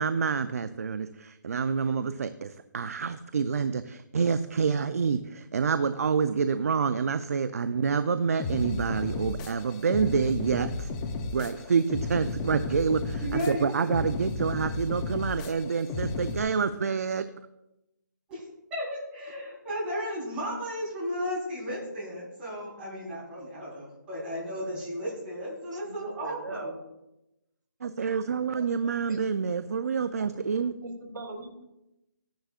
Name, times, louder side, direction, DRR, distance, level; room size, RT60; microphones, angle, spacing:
voice 1, 0.0-10.9 11.3-17.3 27.8-30.7, right 5 dB, 50° right, 12 dB, 0.5 m, -27 dB
sound 1, 8.4-16.4, left 3 dB, 10° left, 0.4 m, -34 dB
voice 2, 13.2-14.0 18.3-18.4 18.7-26.8 28.0-28.1 28.5-28.6, equal, 10° right, -7 dB, 3.7 m, -34 dB
voice 3, 25.8-26.7 29.1-29.2 30.8-31.6, right 2 dB, 75° right, 2 dB, 3.0 m, -39 dB
15.5 x 10.0 x 2.4 m, 0.92 s
hypercardioid pair, 170°, 10 cm